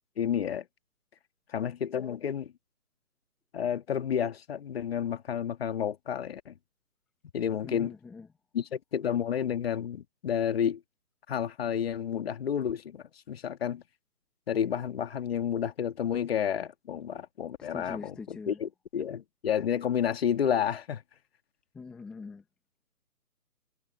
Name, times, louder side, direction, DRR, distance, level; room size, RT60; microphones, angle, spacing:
voice 1, 0.2-0.6 1.5-2.5 3.5-6.5 7.3-7.9 8.5-10.8 11.3-13.8 14.5-21.0, left 8 dB, 40° left, 2.2 m, -30 dB
voice 2, 7.6-8.3 17.6-18.6 21.7-22.4, left 4 dB, ahead, 0.9 m, -43 dB
figure-of-eight pair, 150°, 45 cm